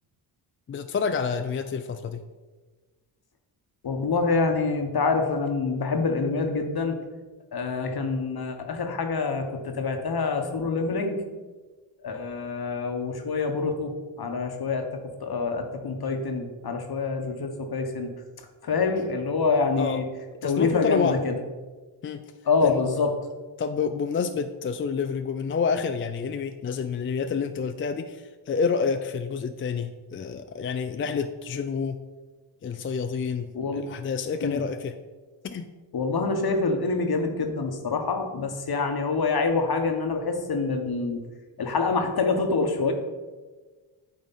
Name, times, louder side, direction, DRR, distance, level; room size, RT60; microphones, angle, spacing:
voice 1, 0.7-2.2 19.8-20.0 20.4-21.2 22.0-22.2 22.6-22.8 23.6-32.0 32.6-34.9 35.4-35.6, left 5 dB, 30° left, 8 dB, 0.3 m, -28 dB
voice 2, 3.8-7.0 7.5-11.2 12.0-13.9 14.2-14.9 15.2-18.1 18.6-20.0 20.4-21.4 22.4-23.1 33.5-33.8 34.4-34.6 35.9-41.2 41.6-42.9, left 4 dB, 45° left, 5 dB, 1.2 m, -26 dB
9.0 x 3.4 x 4.1 m, 1.3 s
supercardioid pair, 50°, 50 cm